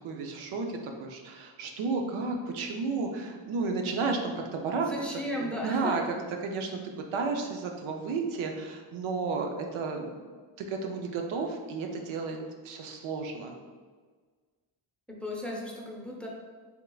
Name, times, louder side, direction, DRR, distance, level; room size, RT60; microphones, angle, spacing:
voice 1, 0.0-6.0 6.4-10.1 10.6-12.4 12.6-13.6, right 4 dB, 85° right, 3 dB, 0.6 m, -32 dB
voice 2, 4.9-6.0 15.1-16.3, left 1 dB, ahead, -1 dB, 0.6 m, -35 dB
4.5 x 3.6 x 2.3 m, 1.5 s
cardioid pair, 90°, 47 cm